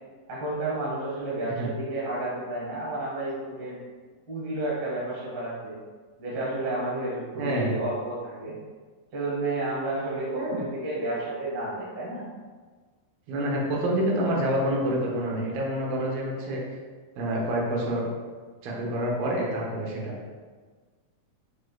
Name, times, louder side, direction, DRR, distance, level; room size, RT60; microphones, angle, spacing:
voice 1, 0.3-3.8 4.3-5.7 6.2-8.5 9.1-12.2, right 2 dB, 55° right, -7 dB, 1.4 m, -31 dB
voice 2, 7.4-7.8 10.3-10.6 13.3-16.6 17.2-18.1 18.6-20.1, right 1 dB, 90° right, -2 dB, 2.6 m, -27 dB
5.8 x 3.1 x 2.3 m, 1.5 s
omnidirectional pair, 4.0 m